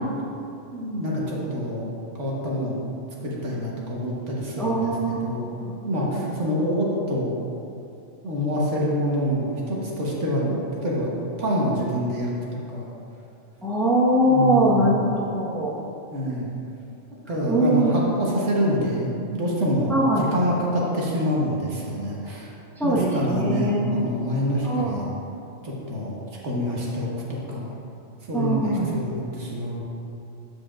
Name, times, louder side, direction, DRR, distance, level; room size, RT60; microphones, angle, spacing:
voice 1, 0.7-1.9 2.2-2.7 3.2-5.5 5.8-7.3 8.2-12.3 12.7-12.9 14.3-15.0 16.1-16.5 17.1-22.5 22.8-25.1 25.6-26.2 26.4-27.7 28.3-29.8, equal, 70° right, -4 dB, 1.6 m, -26 dB
voice 2, 4.6-5.7 6.1-6.2 13.6-15.7 17.5-17.9 19.9-20.2 22.8-24.0 24.6-25.1 28.3-28.9, right 1 dB, ahead, -7 dB, 1.1 m, -22 dB
13.5 x 4.9 x 2.5 m, 2.7 s
omnidirectional pair, 1.3 m